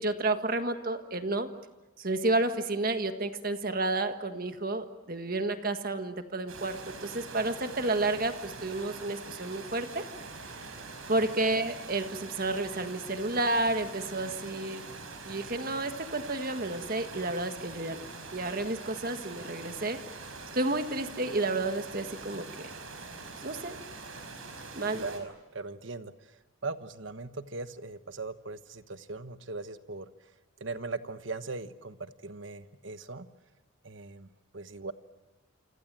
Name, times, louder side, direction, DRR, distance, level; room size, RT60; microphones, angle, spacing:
voice 1, 0.0-1.5 2.0-10.0 11.1-14.9 15.2-20.0 20.5-22.8 23.4-23.8 24.7-25.0, right 2 dB, 45° right, 7 dB, 1.6 m, -31 dB
sound 1, 6.5-25.2, right 3 dB, 85° right, 5.5 m, -44 dB
voice 2, 24.9-30.1 30.6-33.3 33.8-34.9, right 3 dB, 65° right, 11 dB, 1.2 m, -40 dB
28.5 x 25.5 x 7.6 m, 1.1 s
head